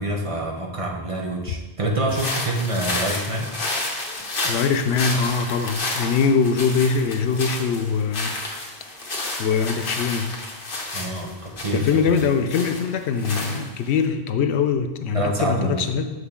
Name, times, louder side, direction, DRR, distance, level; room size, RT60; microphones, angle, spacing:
voice 1, 0.0-3.5 10.9-12.2 15.1-15.9, right 1 dB, 35° right, 0 dB, 0.9 m, -26 dB
sound 1, 2.1-14.0, left 2 dB, 55° left, 1.3 m, -31 dB
voice 2, 4.4-8.4 9.4-10.4 11.7-16.1, left 5 dB, 90° left, 8 dB, 0.9 m, -22 dB
6.5 x 6.3 x 3.7 m, 1.1 s
omnidirectional pair, 1.1 m